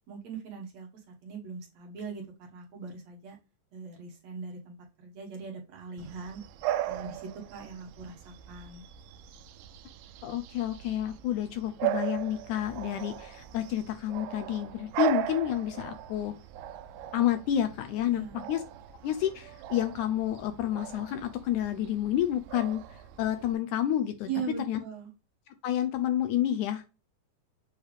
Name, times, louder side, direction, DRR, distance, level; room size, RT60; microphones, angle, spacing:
voice 1, 0.1-3.4 3.7-6.4 6.9-8.8 18.1-18.5 24.3-25.1, right 6 dB, 60° right, 1 dB, 2.2 m, -40 dB
Bark / Bird vocalization bird call bird song, 6.0-23.5, right 13 dB, 85° right, 2.2 m, -38 dB
voice 2, 10.2-16.3 17.1-18.6 19.0-22.8 23.2-24.3 24.7-24.8 25.6-26.9, left 11 dB, 75° left, 10 dB, 1.9 m, -29 dB
7.2 x 3.3 x 4.9 m, 0.30 s
omnidirectional pair, 3.9 m